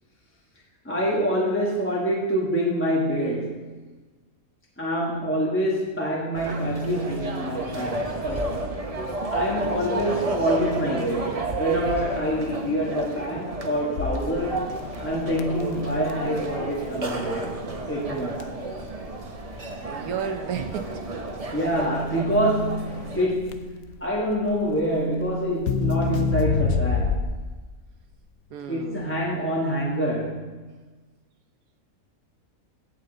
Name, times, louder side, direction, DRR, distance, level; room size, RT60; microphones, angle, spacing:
voice 1, 0.8-3.7 4.8-8.7 9.3-11.3 11.6-14.7 15.0-17.5 17.9-18.4 21.5-23.7 24.0-27.3 28.7-30.6, equal, 10° left, -4 dB, 1.1 m, -26 dB
sound 1, 6.3-23.3, right 2 dB, 30° right, 0.8 m, -32 dB
Crackle, 14.0-27.5, left 5 dB, 85° left, 1.1 m, -29 dB
voice 2, 19.8-21.0 28.5-29.1, right 7 dB, 90° right, 7 dB, 1.3 m, -32 dB
16.5 x 5.9 x 3.9 m, 1.3 s
omnidirectional pair, 1.5 m